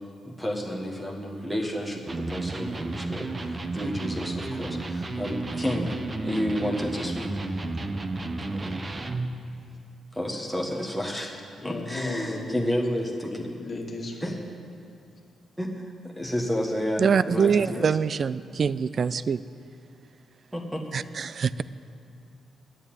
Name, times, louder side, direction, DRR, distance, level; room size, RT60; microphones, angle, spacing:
voice 1, 0.2-7.3 8.5-8.8 10.1-11.3 11.6-13.5 14.2-14.4 15.6-17.9 20.5-20.8, equal, 5° right, 0 dB, 1.4 m, -31 dB
Electric guitar, 2.1-9.4, right 2 dB, 25° right, 0.7 m, -32 dB
voice 2, 11.6-12.8 13.3-14.4, left 2 dB, 35° left, 0 dB, 1.9 m, -35 dB
voice 3, 17.0-19.4 20.9-21.6, right 6 dB, 45° right, 17 dB, 0.3 m, -24 dB
11.0 x 8.8 x 9.0 m, 2.5 s
cardioid pair, 125°, 0 cm